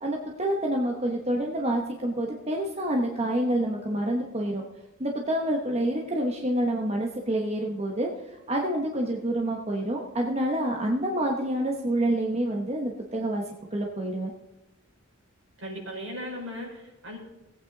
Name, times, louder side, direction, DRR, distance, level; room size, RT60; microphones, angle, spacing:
voice 1, 0.0-4.6 5.0-13.4 13.7-14.3, right 1 dB, 30° right, 0 dB, 1.0 m, -27 dB
voice 2, 15.6-17.2, equal, 65° right, -2 dB, 4.4 m, -37 dB
18.0 x 8.6 x 4.0 m, 1.0 s
head